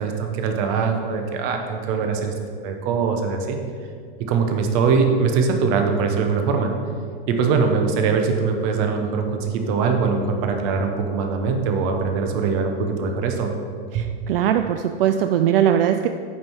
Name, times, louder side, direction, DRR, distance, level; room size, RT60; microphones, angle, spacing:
voice 1, 0.0-2.3 2.6-3.6 4.2-6.7 7.3-13.5 13.9-14.0, right 5 dB, 35° right, 4 dB, 0.9 m, -22 dB
voice 2, 13.9-16.1, right 10 dB, 70° right, 7 dB, 0.4 m, -20 dB
8.6 x 5.6 x 4.6 m, 2.2 s
supercardioid pair, 160°, 30 cm